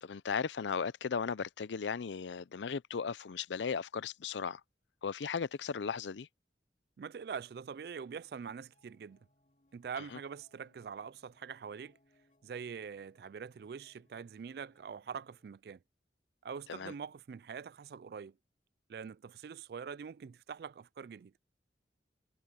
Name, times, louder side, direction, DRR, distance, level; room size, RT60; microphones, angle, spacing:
voice 1, 0.0-4.6 5.0-6.3 16.7-16.9, left 6 dB, 90° left, 0.5 m, -36 dB
voice 2, 7.0-9.2 9.7-12.0 12.4-15.8 16.4-18.4 18.9-21.3, right 6 dB, 60° right, 0.3 m, -44 dB
sound 1, 8.0-15.5, left 1 dB, 40° left, 3.1 m, -73 dB
head